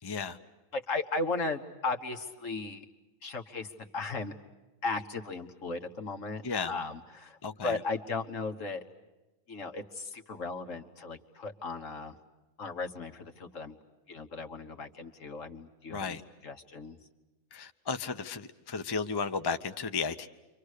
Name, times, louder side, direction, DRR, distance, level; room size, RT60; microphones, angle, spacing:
voice 1, 0.0-0.4 6.4-6.7 7.4-7.8 15.9-16.2 17.5-20.3, left 5 dB, 20° left, 8 dB, 0.7 m, -34 dB
voice 2, 0.7-2.9 3.2-4.3 4.8-6.4 6.7-8.8 9.5-12.1 12.6-13.8 14.1-16.2 16.4-17.0, left 3 dB, 65° left, 4 dB, 1.9 m, -36 dB
30.0 x 25.5 x 6.6 m, 1.1 s
omnidirectional pair, 1.4 m